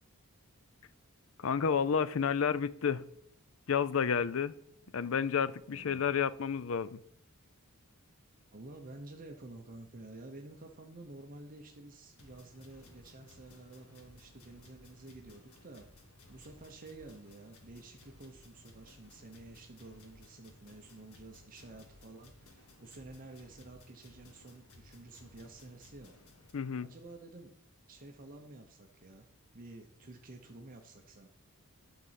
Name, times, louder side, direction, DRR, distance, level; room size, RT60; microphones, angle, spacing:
voice 1, 1.4-3.0 3.7-4.5 4.9-7.0 26.5-26.9, left 6 dB, 65° left, 0.5 m, -30 dB
voice 2, 5.7-6.0 8.5-15.9 16.3-26.2 26.8-27.5 27.9-29.3 29.5-31.3, right 2 dB, 40° right, 0.8 m, -51 dB
sound 1, 12.2-26.5, left 2 dB, 80° left, 1.6 m, -59 dB
11.5 x 4.1 x 7.4 m
head